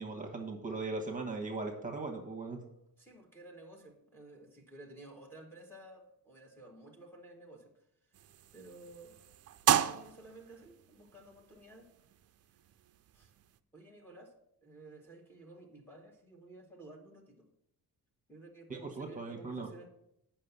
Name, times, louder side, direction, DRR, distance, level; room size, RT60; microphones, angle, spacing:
voice 1, 0.0-2.6 18.7-19.7, right 3 dB, 20° right, 2 dB, 1.1 m, -39 dB
voice 2, 3.0-7.7 8.5-9.3 9.6-11.9 13.1-13.3 13.7-14.3 14.6-17.5 18.3-19.9, right 2 dB, 5° left, 3 dB, 1.1 m, -53 dB
sound 1, 8.1-13.6, right 10 dB, 45° right, 0.4 m, -36 dB
8.5 x 5.8 x 6.8 m, 0.78 s
wide cardioid pair, 170°, 35 cm